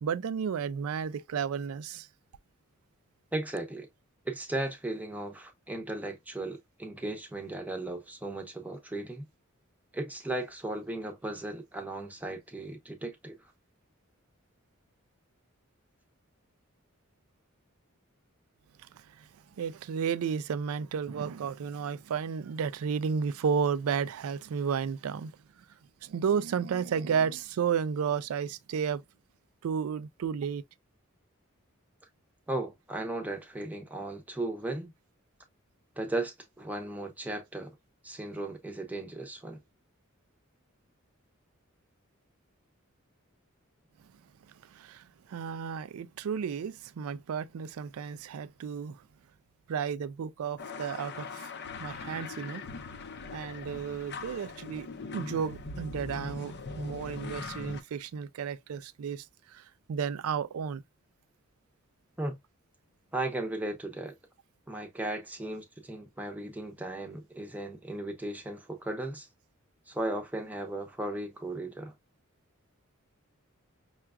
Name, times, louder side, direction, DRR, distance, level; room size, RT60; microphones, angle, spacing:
voice 1, 0.0-2.1 18.8-19.3 19.6-25.3 26.0-29.0 29.6-30.6 44.6-49.0 49.7-51.5 51.8-52.6 53.3-60.8, right 7 dB, 85° right, 0.4 m, -33 dB
voice 2, 3.3-3.9 4.2-9.3 9.9-13.5 32.5-34.9 36.0-37.7 38.0-39.6 62.2-62.4 63.1-64.2 64.7-69.3 69.9-71.9, right 2 dB, 10° right, 0.7 m, -36 dB
sound 1, 50.6-57.8, left 4 dB, 55° left, 0.5 m, -41 dB
5.7 x 2.3 x 2.2 m
head